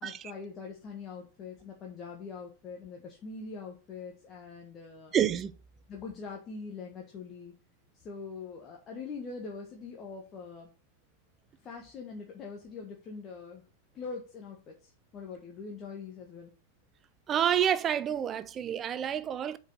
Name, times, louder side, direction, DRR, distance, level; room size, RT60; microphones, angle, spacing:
voice 1, 0.0-5.1 5.9-7.5 7.9-10.7 11.6-13.6 13.9-16.5, left 4 dB, 30° left, 1.4 m, -43 dB
voice 2, 5.1-5.5 17.3-19.6, right 9 dB, 25° right, 0.6 m, -28 dB
7.7 x 4.8 x 4.0 m
figure-of-eight pair, 90°, 0 cm